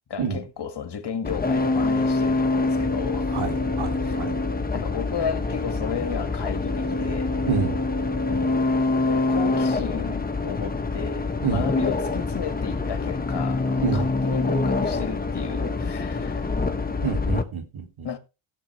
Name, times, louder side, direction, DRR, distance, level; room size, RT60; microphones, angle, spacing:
voice 1, 0.1-3.4 4.0-4.2 4.7-7.4 8.3-8.6 9.1-16.5 18.0-18.2, left 7 dB, 55° left, 2.0 m, -33 dB
sound 1, 1.2-17.4, left 3 dB, 20° left, 1.3 m, -25 dB
voice 2, 3.3-4.4 7.5-7.8 11.4-11.6 13.8-14.1 17.0-18.1, right 6 dB, 75° right, 2.9 m, -28 dB
16.5 x 7.2 x 3.4 m
cardioid pair, 75°, 49 cm